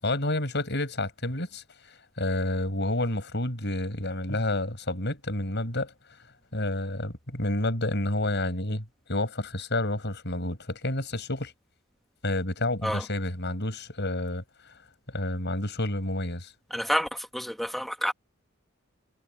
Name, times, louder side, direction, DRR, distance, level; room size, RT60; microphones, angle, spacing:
voice 1, 0.0-5.9 6.5-11.5 12.2-14.4 15.1-16.5, left 1 dB, 60° left, 7.6 m, -29 dB
voice 2, 16.7-17.1 17.3-18.1, equal, ahead, 1.1 m, -28 dB
head